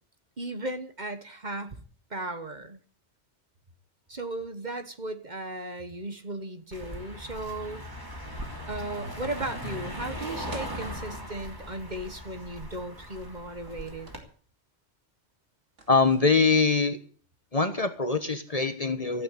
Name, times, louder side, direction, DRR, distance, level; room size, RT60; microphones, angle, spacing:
voice 1, 0.4-1.8 2.1-2.8 4.1-7.8 8.7-14.1, right 2 dB, 40° right, 9 dB, 1.5 m, -36 dB
Car passing by, 6.7-14.2, equal, 20° right, 3.2 m, -39 dB
sound 1, 10.5-10.8 13.7-14.3 15.8-16.5, right 2 dB, 90° right, 2.5 m, -46 dB
voice 2, 15.9-17.0 17.5-19.2, left 4 dB, 30° left, 9 dB, 1.2 m, -23 dB
15.0 x 8.8 x 8.3 m, 0.43 s
omnidirectional pair, 1.2 m